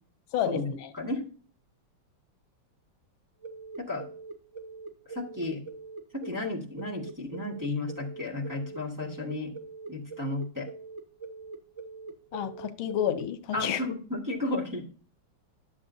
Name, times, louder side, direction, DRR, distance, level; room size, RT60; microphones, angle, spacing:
voice 1, 0.3-0.9 12.3-13.8, left 10 dB, 85° left, 1.6 m, -30 dB
sound 1, 3.4-13.2, right 4 dB, 45° right, 1.1 m, -43 dB
voice 2, 5.1-5.6 6.1-9.5 9.9-10.7 13.5-14.8, left 2 dB, 10° right, 1.8 m, -33 dB
11.5 x 7.5 x 2.7 m
omnidirectional pair, 2.2 m